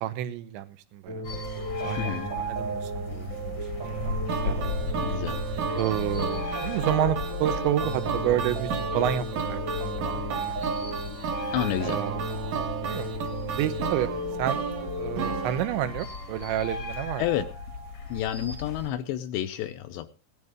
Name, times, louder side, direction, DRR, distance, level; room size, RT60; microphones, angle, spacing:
voice 1, 0.0-1.3 1.8-3.6 3.9-4.1 4.4-4.9 5.8-10.5 11.8-12.3 12.9-13.1 13.6-14.1 14.4-14.6 15.0-17.2, right 12 dB, 80° right, 11 dB, 2.9 m, -30 dB
sound 1, 1.1-15.5, right 2 dB, 40° right, 1.7 m, -35 dB
sound 2, 1.2-18.9, left 3 dB, 55° left, 1.2 m, -36 dB
voice 2, 2.0-2.3 5.0-5.5 11.5-12.0 17.2-17.5 18.1-20.1, left 12 dB, 80° left, 9 dB, 2.6 m, -30 dB
sound 3, 4.3-16.5, right 6 dB, 65° right, 2.3 m, -34 dB
17.0 x 11.0 x 3.6 m, 0.31 s
omnidirectional pair, 5.5 m